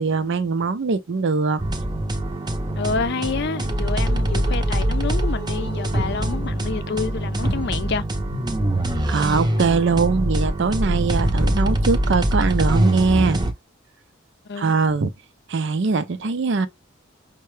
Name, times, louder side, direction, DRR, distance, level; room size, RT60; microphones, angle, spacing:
voice 1, 0.0-1.6 9.1-13.4 14.6-15.1 15.5-16.7, right 4 dB, 60° right, 0.5 m, -21 dB
sound 1, 1.6-13.5, right 1 dB, 20° right, 0.6 m, -23 dB
voice 2, 2.8-8.0 14.5-14.7, left 4 dB, 55° left, 0.5 m, -28 dB
5.4 x 2.2 x 3.2 m
head